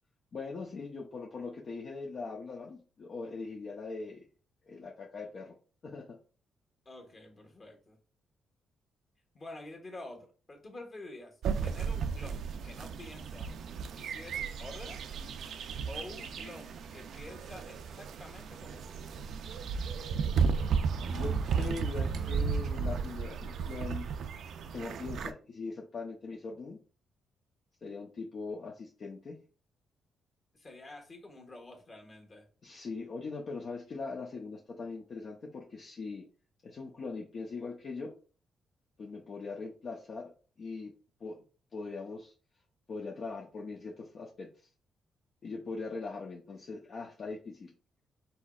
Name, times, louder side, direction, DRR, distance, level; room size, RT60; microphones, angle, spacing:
voice 1, 0.3-4.3 4.7-5.6 5.8-6.2 21.1-24.1 24.7-26.8 27.8-29.4 32.6-36.3 36.6-38.2 39.0-40.3 40.6-40.9 41.2-41.4 41.7-42.3 42.9-44.5 45.4-47.7, left 4 dB, 50° left, -1 dB, 0.7 m, -41 dB
voice 2, 6.8-8.0 9.3-13.5 14.0-15.0 15.9-19.0 30.5-32.5, left 2 dB, 30° left, 2 dB, 1.5 m, -48 dB
sound 1, 11.4-25.3, right 6 dB, 70° right, 0.4 m, -34 dB
4.6 x 4.1 x 2.4 m, 0.38 s
cardioid pair, 115°, 0 cm